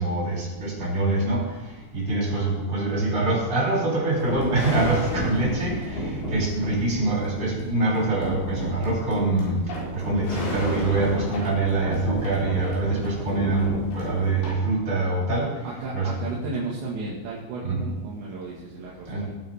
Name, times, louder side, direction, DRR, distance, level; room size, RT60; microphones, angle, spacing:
voice 1, 0.0-1.5 1.9-9.6 9.9-15.5 15.9-16.3 17.6-17.8 19.1-19.3, right 2 dB, 25° right, -5 dB, 3.7 m, -24 dB
sound 1, 4.1-14.5, equal, 80° left, 6.4 m, -32 dB
voice 2, 15.6-19.3, right 3 dB, 75° right, -6 dB, 4.0 m, -34 dB
20.0 x 8.7 x 3.6 m, 1.1 s
omnidirectional pair, 5.4 m